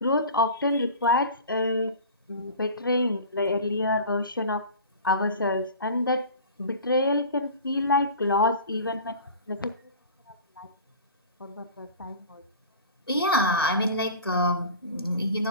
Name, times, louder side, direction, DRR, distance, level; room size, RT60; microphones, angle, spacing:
voice 1, 0.0-1.9 2.3-4.6 5.0-6.3 6.6-9.1 9.5-9.7 10.6-10.7 11.4-12.4, left 2 dB, 65° left, 12 dB, 1.0 m, -26 dB
voice 2, 13.1-15.5, left 1 dB, 90° left, 5 dB, 2.3 m, -25 dB
14.5 x 6.6 x 2.6 m, 0.42 s
figure-of-eight pair, 160°, 12 cm